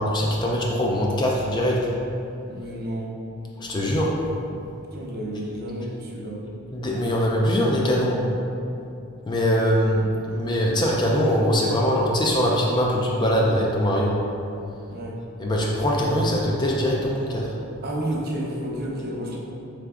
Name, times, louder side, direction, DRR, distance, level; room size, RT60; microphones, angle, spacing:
voice 1, 0.0-1.9 3.6-4.3 6.7-8.3 9.3-14.2 15.4-17.5, equal, 20° left, -3 dB, 0.4 m, -22 dB
voice 2, 2.5-3.1 4.9-6.4 14.9-15.2 17.8-19.4, right 1 dB, 45° right, -3 dB, 0.6 m, -31 dB
3.8 x 3.4 x 3.6 m, 2.7 s
head